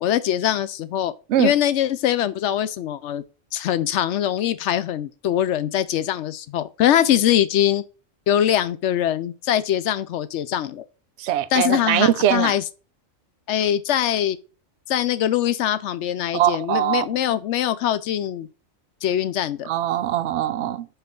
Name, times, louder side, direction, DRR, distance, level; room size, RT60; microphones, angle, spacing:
voice 1, 0.0-1.1 1.4-3.2 3.5-7.8 8.3-10.8 11.5-12.6 13.5-14.4 14.9-18.5 19.0-19.7, left 11 dB, 70° left, 0.9 m, -22 dB
voice 2, 11.2-12.5 16.3-17.1 19.7-20.9, right 11 dB, 70° right, 0.8 m, -21 dB
5.6 x 5.2 x 3.7 m
omnidirectional pair, 1.3 m